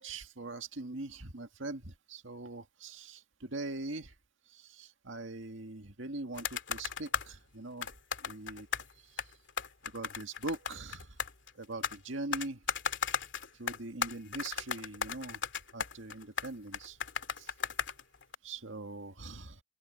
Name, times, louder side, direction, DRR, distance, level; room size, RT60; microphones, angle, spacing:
voice 1, 0.0-4.1 4.5-7.9 8.2-8.7 9.0-9.3 9.8-11.2 11.6-12.6 13.6-15.4 15.7-17.0 17.4-17.5 18.4-19.6, right 2 dB, 80° right, 1.9 m, -42 dB
sound 1, 6.4-7.3 7.8-8.9 9.2-12.0 12.3-18.4, left 6 dB, 70° left, 2.5 m, -36 dB
open air
head